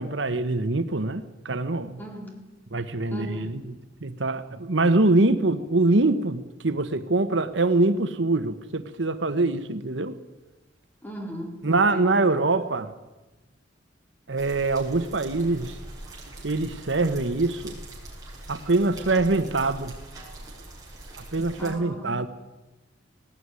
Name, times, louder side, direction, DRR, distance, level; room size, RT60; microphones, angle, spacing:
voice 1, 0.0-2.0 2.7-3.7 4.0-10.1 11.6-12.9 14.3-15.8 16.4-17.8 18.5-19.9 21.2-22.3, right 2 dB, 70° right, 9 dB, 1.2 m, -24 dB
voice 2, 2.0-2.4 3.1-3.7 11.0-12.3 21.6-22.3, equal, 10° left, 2 dB, 4.1 m, -37 dB
sound 1, 14.4-21.7, right 1 dB, 20° right, 6.4 m, -42 dB
19.0 x 17.5 x 9.8 m, 1.1 s
head